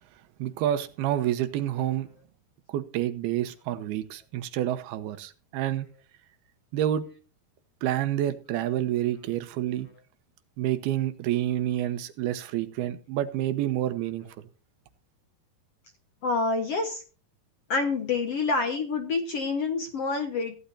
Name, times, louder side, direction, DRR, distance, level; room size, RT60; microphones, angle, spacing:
voice 1, 0.4-2.1 2.7-5.9 6.7-7.1 7.8-9.9 10.6-14.5, right 12 dB, 85° right, 3.0 m, -28 dB
voice 2, 16.2-17.0 17.7-20.6, left 3 dB, 55° left, 1.8 m, -27 dB
16.0 x 11.5 x 2.7 m
omnidirectional pair, 4.5 m